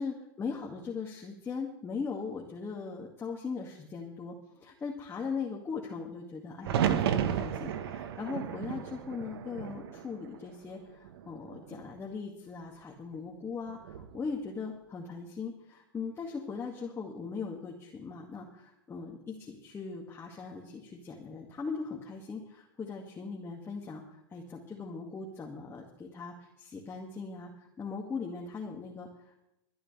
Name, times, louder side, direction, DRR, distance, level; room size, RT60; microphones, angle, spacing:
voice 1, 0.0-29.4, left 5 dB, 20° left, -2 dB, 2.2 m, -39 dB
sound 1, 6.6-10.7 11.0-11.8 13.7-14.2, right 9 dB, 75° right, 1.5 m, -33 dB
23.0 x 11.0 x 3.4 m, 0.84 s
hypercardioid pair, 120°, 13 cm